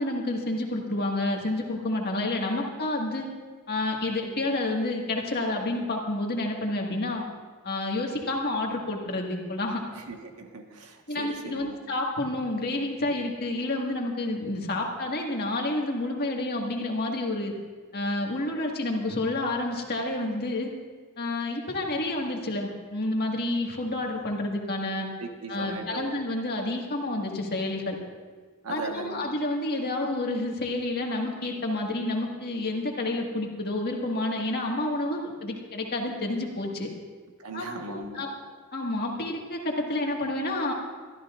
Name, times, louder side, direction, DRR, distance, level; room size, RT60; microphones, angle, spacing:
voice 1, 0.0-3.3 3.7-7.2 7.6-9.8 11.1-17.5 17.9-20.7 21.2-25.1 25.5-28.0 28.7-36.9 37.5-38.3 38.7-40.7, left 2 dB, 45° left, 0 dB, 1.8 m, -29 dB
voice 2, 9.9-11.8 25.2-26.1 28.6-29.2 37.4-38.2, right 3 dB, 75° right, 3 dB, 1.4 m, -38 dB
23.5 x 13.0 x 2.5 m, 1.5 s
head